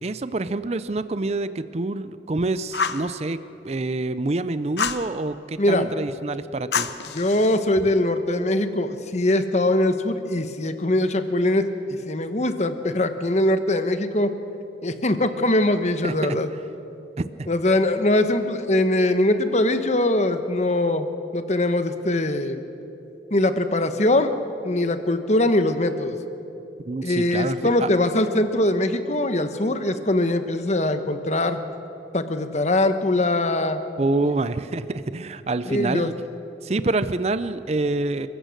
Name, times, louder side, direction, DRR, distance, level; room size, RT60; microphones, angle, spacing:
voice 1, 0.0-3.4 3.6-6.9 16.0-16.4 17.2-17.5 26.9-27.9 34.0-36.1 36.6-38.3, right 2 dB, 35° right, 13 dB, 0.5 m, -26 dB
Fire, 2.7-3.1 4.8-5.1 6.7-7.6, left 6 dB, 70° left, 0.9 m, -27 dB
voice 2, 5.6-5.9 7.1-11.7 12.0-14.4 14.8-16.5 17.5-22.6 23.3-24.3 24.6-26.2 27.0-31.6 32.1-33.8 35.7-36.1, left 1 dB, 40° left, 9 dB, 1.1 m, -22 dB
29.5 x 15.5 x 6.6 m, 2.9 s
head